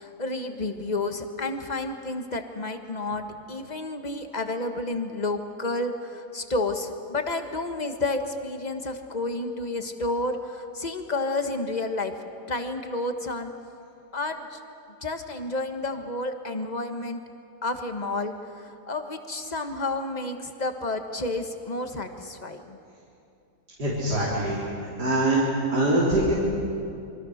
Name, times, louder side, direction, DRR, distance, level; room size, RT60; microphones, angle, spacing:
voice 1, 0.0-12.1 12.5-13.5 14.1-14.6 15.0-17.2 17.6-22.8, left 2 dB, 25° left, 6 dB, 1.5 m, -30 dB
voice 2, 23.8-26.3, right 1 dB, 80° right, -6 dB, 4.5 m, -24 dB
27.5 x 24.0 x 6.6 m, 2.6 s
omnidirectional pair, 1.7 m